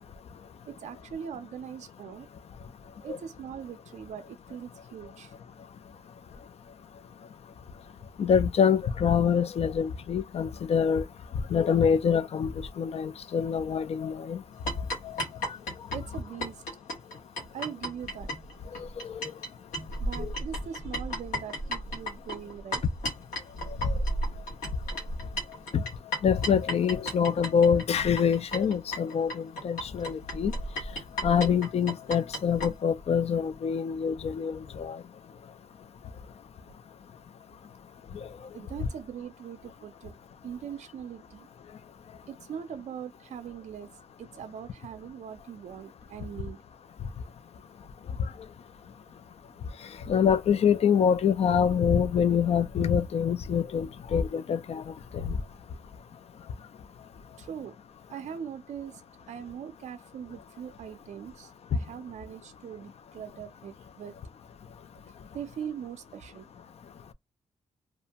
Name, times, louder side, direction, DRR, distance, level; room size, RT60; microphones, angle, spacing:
voice 1, 0.7-2.3 3.0-5.3 15.9-16.6 17.5-18.3 20.0-22.8 38.5-40.2 40.4-41.5 42.3-43.9 44.2-46.6 57.4-57.8 58.1-59.0 59.3-64.2 65.3-66.5, right 8 dB, 60° right, 0.4 m, -41 dB
voice 2, 8.2-11.0 11.5-12.5 12.8-14.4 15.0-15.1 19.2-19.3 20.2-20.3 23.8-23.9 25.7-25.8 26.2-30.5 31.2-35.0 50.1-54.8 55.1-55.4, left 7 dB, 50° left, 0.4 m, -25 dB
sound 1, 14.7-19.5 19.7-32.7, equal, 85° left, 1.2 m, -33 dB
2.4 x 2.1 x 2.8 m
cardioid pair, 70°, 13 cm